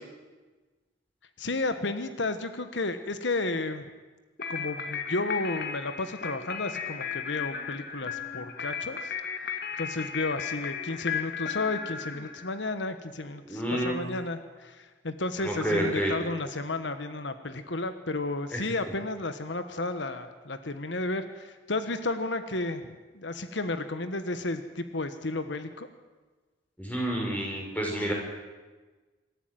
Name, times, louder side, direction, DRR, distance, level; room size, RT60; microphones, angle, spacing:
voice 1, 1.4-3.8 4.5-9.1 9.5-25.9, left 2 dB, 75° left, 10 dB, 1.3 m, -32 dB
sound 1, 4.4-12.7, left 7 dB, 55° left, 1.8 m, -35 dB
voice 2, 13.5-14.0 15.4-16.1 18.5-18.6 26.8-28.1, right 1 dB, 10° left, -1 dB, 5.5 m, -29 dB
26.0 x 13.5 x 9.2 m, 1.3 s
head